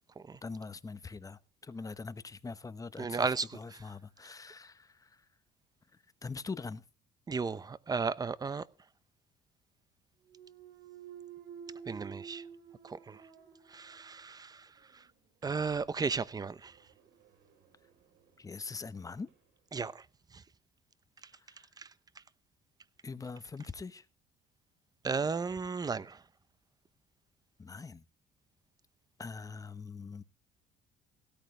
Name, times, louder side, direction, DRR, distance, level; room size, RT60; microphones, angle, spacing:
voice 1, 0.4-5.2 6.2-6.8 18.4-19.3 23.0-24.0 27.6-28.0 29.2-30.2, left 4 dB, 20° left, 0.9 m, -43 dB
voice 2, 3.0-3.5 7.3-8.6 11.9-12.4 12.8-13.2 13.7-15.0 15.4-16.8 19.7-20.0 20.3-20.4 21.8-21.9 25.0-26.2, right 5 dB, 20° right, 0.7 m, -34 dB
Thump thud, 10.2-14.3 14.7-19.4, right 7 dB, 90° right, 4.1 m, -52 dB
17.0 x 13.5 x 3.3 m
cardioid pair, 110°, 17 cm